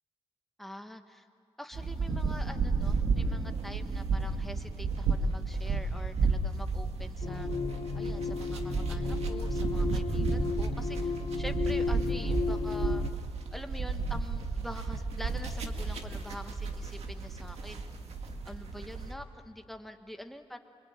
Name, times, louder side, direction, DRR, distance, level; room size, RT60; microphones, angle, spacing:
voice 1, 0.6-1.3 1.6-7.5 7.9-13.1 13.5-17.8 18.4-20.6, equal, ahead, 5 dB, 1.3 m, -45 dB
sound 1, 1.7-19.1, right 4 dB, 85° right, 2.0 m, -32 dB
sound 2, 7.2-13.1, left 5 dB, 55° left, 0.9 m, -34 dB
27.5 x 24.0 x 8.8 m, 2.2 s
wide cardioid pair, 165°, 11 cm